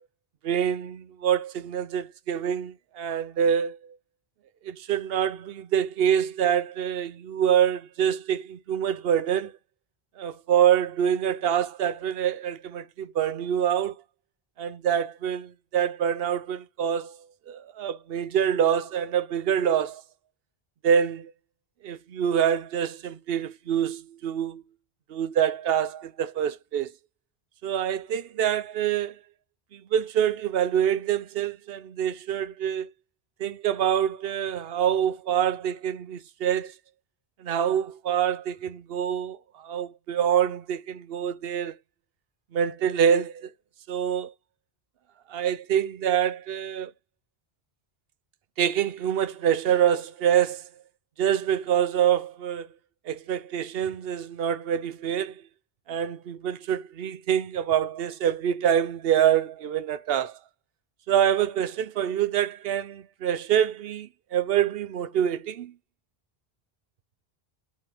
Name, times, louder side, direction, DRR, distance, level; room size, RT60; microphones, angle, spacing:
voice 1, 0.4-3.8 4.6-9.5 10.2-13.9 14.6-17.2 17.5-20.0 20.8-21.3 21.8-24.6 25.1-26.9 27.6-29.1 29.7-32.9 33.4-36.7 37.4-41.7 42.5-43.5 43.9-44.3 45.3-46.9 48.6-50.7 51.2-52.7 53.1-55.4 55.9-60.3 61.1-65.7, right 9 dB, 75° right, 0.9 m, -26 dB
5.6 x 5.5 x 5.0 m
omnidirectional pair, 1.0 m